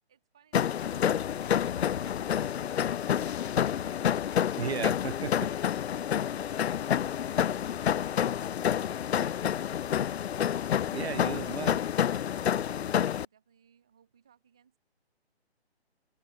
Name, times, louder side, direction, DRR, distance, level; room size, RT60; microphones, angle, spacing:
voice 1, 0.1-3.1 11.4-12.0 12.7-14.8, right 8 dB, 5° right, 0.5 m, -64 dB
sound 1, 0.5-13.2, left 9 dB, 75° left, 0.5 m, -29 dB
sound 2, 0.8-4.8, left 7 dB, 50° left, 4.2 m, -48 dB
voice 2, 4.6-5.3 10.9-11.8, right 7 dB, 70° right, 1.0 m, -34 dB
hypercardioid pair, 165°, 33 cm